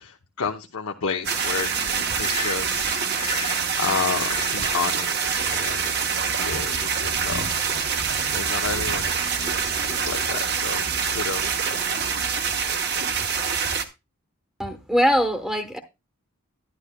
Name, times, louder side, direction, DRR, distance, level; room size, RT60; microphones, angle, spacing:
voice 1, 0.0-3.4 3.8-7.9 8.3-11.9, left 5 dB, 80° left, 0.8 m, -32 dB
sound 1, 1.2-13.8, right 6 dB, 45° right, 0.8 m, -25 dB
Breathing, 1.3-5.0, left 5 dB, 25° left, 0.7 m, -36 dB
voice 2, 14.6-15.8, equal, 5° right, 0.9 m, -22 dB
11.5 x 11.0 x 2.2 m
head